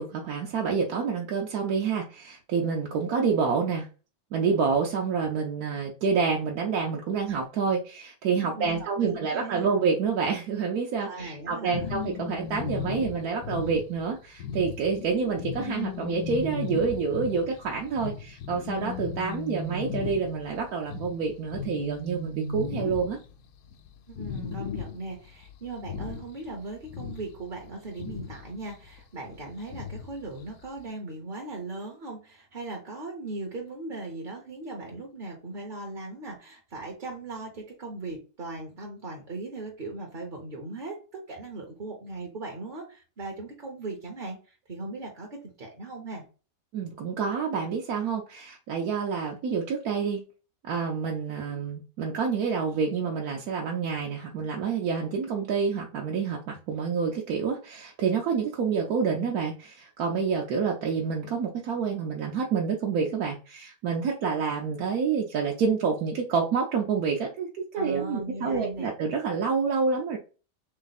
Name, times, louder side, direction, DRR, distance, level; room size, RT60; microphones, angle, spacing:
voice 1, 0.0-3.9 4.3-23.2 46.7-50.2 50.6-70.2, right 5 dB, 75° right, 0 dB, 1.2 m, -28 dB
voice 2, 8.3-9.7 11.0-12.1 24.1-46.3 67.7-68.9, right 2 dB, 40° right, 1 dB, 0.8 m, -38 dB
sound 1, 11.7-23.5 23.7-23.9 24.2-25.1 25.4-26.5 26.8-28.4 29.7-30.1 30.6-30.7, left 6 dB, 85° left, 1.1 m, -36 dB
3.5 x 3.3 x 4.0 m, 0.35 s
omnidirectional pair, 1.6 m